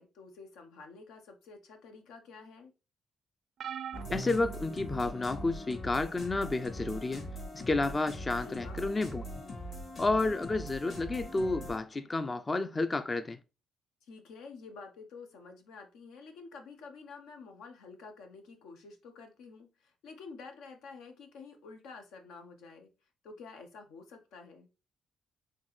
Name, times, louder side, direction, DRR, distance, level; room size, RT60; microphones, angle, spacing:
voice 1, 0.0-2.7 8.4-8.9 14.0-22.9 23.2-24.7, left 4 dB, 90° left, 0.8 m, -50 dB
sound 1, 3.6-5.4 6.1-6.4 7.7-7.8, right 6 dB, 65° right, 0.4 m, -42 dB
sound 2, 3.9-11.8, equal, 55° left, 2.0 m, -42 dB
voice 2, 4.1-7.3 7.5-9.2 10.0-13.4, left 2 dB, 25° left, 0.3 m, -31 dB
4.4 x 3.4 x 3.1 m
cardioid pair, 90°, 0 cm